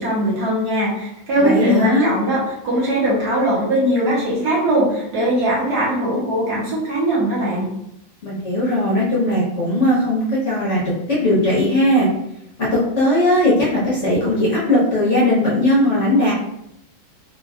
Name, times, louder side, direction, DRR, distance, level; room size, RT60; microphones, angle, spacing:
voice 1, 0.0-7.7, right 1 dB, 60° right, -7 dB, 1.6 m, -20 dB
voice 2, 1.4-2.1 8.2-10.8 11.1-12.1 13.0-16.3, left 1 dB, 50° left, -7 dB, 1.1 m, -18 dB
4.2 x 2.9 x 2.3 m, 0.81 s
omnidirectional pair, 2.1 m